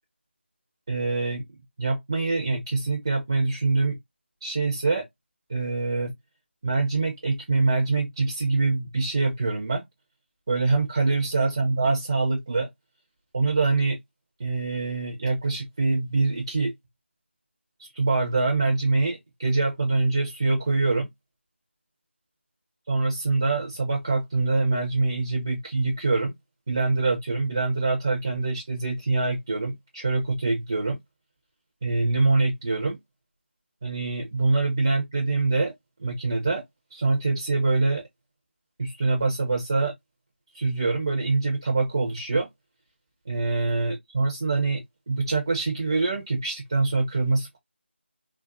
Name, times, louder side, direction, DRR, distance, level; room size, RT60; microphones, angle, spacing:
voice 1, 0.9-1.4 1.8-4.0 4.4-5.1 5.5-6.1 6.6-9.8 10.5-12.7 13.3-14.0 14.4-16.7 17.8-21.1 22.9-26.3 26.7-31.0 31.8-33.0 33.8-35.7 36.0-36.6 36.9-38.0 38.8-39.9 40.5-42.5 43.3-44.8 45.1-47.6, right 3 dB, 20° right, 0.5 m, -24 dB
3.9 x 2.1 x 2.4 m
figure-of-eight pair, 165°, 7 cm